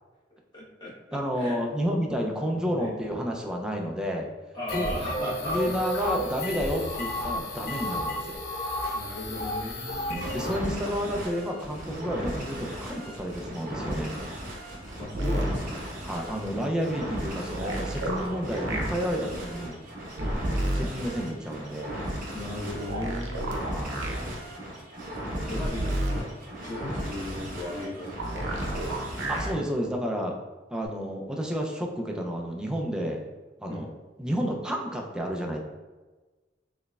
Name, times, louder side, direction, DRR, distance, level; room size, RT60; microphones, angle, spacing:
voice 1, 0.5-1.6 2.5-2.9 4.5-5.6 6.5-6.7 8.9-10.0 15.0-15.8 20.2-20.4 22.3-23.6 25.3-26.3 26.6-28.6 33.7-33.9, left 1 dB, 25° left, -7 dB, 1.2 m, -37 dB
voice 2, 1.1-4.3 4.7-5.0 5.5-8.4 10.3-14.1 16.0-19.8 20.7-22.0 23.7-24.0 29.3-30.3 30.7-33.2 33.6-33.9 34.2-35.6, equal, 5° right, 0 dB, 0.4 m, -30 dB
sound 1, 4.7-10.6, left 1 dB, 55° left, 0.7 m, -32 dB
sound 2, 10.1-29.5, equal, 45° right, 1.0 m, -36 dB
sound 3, 15.1-15.5 17.5-18.9 20.2-20.9 22.8-24.2 25.5-26.2 28.2-29.5 30.8-30.9, right 1 dB, 80° right, 0.7 m, -30 dB
4.3 x 3.2 x 2.3 m, 1.3 s
head